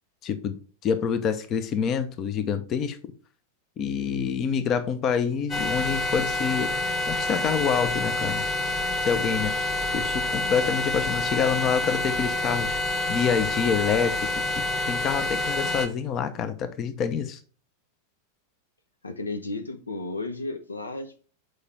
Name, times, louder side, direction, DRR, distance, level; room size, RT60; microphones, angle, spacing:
voice 1, 0.2-3.0 3.8-6.7 7.1-8.4 9.0-9.5 9.9-14.1 14.6-17.4, left 7 dB, 30° left, 11 dB, 0.8 m, -27 dB
sound 1, 5.5-15.9, left 2 dB, 15° left, 1.5 m, -27 dB
voice 2, 19.0-21.3, left 2 dB, 75° left, 8 dB, 0.9 m, -33 dB
6.7 x 4.7 x 4.2 m, 0.38 s
figure-of-eight pair, 90°, 0 cm